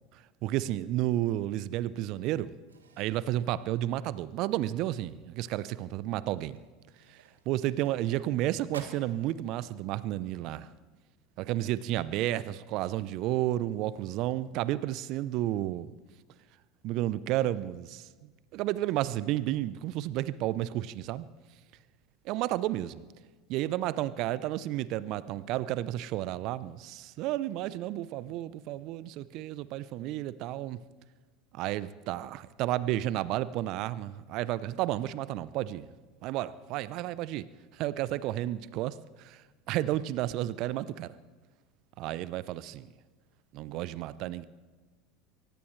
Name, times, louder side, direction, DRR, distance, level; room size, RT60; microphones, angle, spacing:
voice 1, 0.4-2.5 3.0-6.6 7.1-7.2 7.5-10.7 11.4-15.9 16.8-21.3 22.2-23.0 23.5-30.8 31.5-35.9 36.2-37.5 37.7-41.1 42.0-42.9 43.5-44.5, right 14 dB, 55° right, 17 dB, 0.7 m, -32 dB
sound 1, 2.0-4.7 5.0-5.3 5.7-5.8 6.4-8.4 8.7-9.2, right 5 dB, 85° right, 1.6 m, -52 dB
24.0 x 17.0 x 3.3 m, 1.4 s
hypercardioid pair, 75°, 0 cm